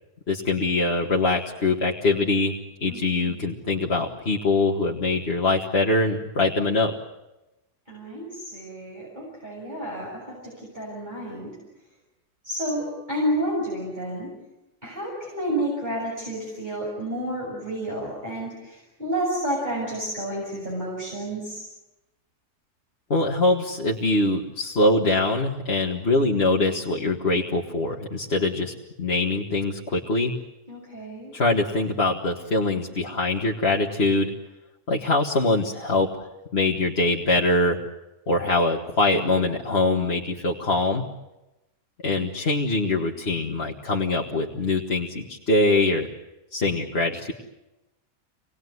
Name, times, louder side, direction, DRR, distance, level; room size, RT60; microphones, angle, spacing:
voice 1, 0.3-2.5 2.8-6.9 23.1-30.3 31.3-34.3 34.9-37.8 38.3-41.0 42.0-46.1 46.5-47.3, left 2 dB, 40° left, 0 dB, 2.0 m, -23 dB
voice 2, 2.9-3.4 7.9-11.6 12.4-14.3 14.8-21.6 30.7-31.3 42.1-42.3, right 1 dB, 25° right, -4 dB, 7.4 m, -30 dB
26.5 x 20.0 x 9.6 m, 0.99 s
omnidirectional pair, 1.7 m